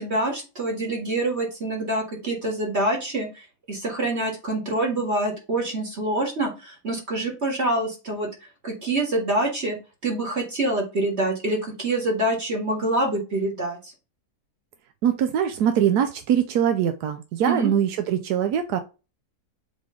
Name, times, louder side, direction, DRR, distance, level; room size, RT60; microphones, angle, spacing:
voice 1, 0.0-3.3 3.7-8.3 8.6-9.8 10.0-13.9 17.5-17.7, right 1 dB, 45° right, 1 dB, 2.1 m, -26 dB
voice 2, 15.0-18.8, right 9 dB, 85° right, 8 dB, 1.2 m, -22 dB
7.7 x 3.4 x 3.8 m, 0.30 s
omnidirectional pair, 1.7 m